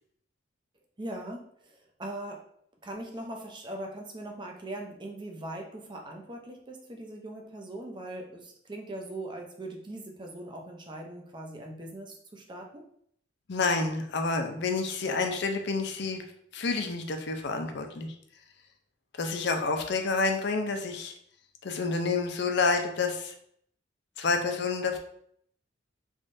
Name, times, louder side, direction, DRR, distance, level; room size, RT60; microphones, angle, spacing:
voice 1, 1.0-2.4 2.8-12.8, right 1 dB, 25° right, 2 dB, 0.6 m, -40 dB
voice 2, 13.5-16.2 16.5-18.1 19.2-21.1 21.6-23.3 24.2-25.0, left 4 dB, 65° left, 5 dB, 0.5 m, -29 dB
3.6 x 3.1 x 2.6 m, 0.67 s
head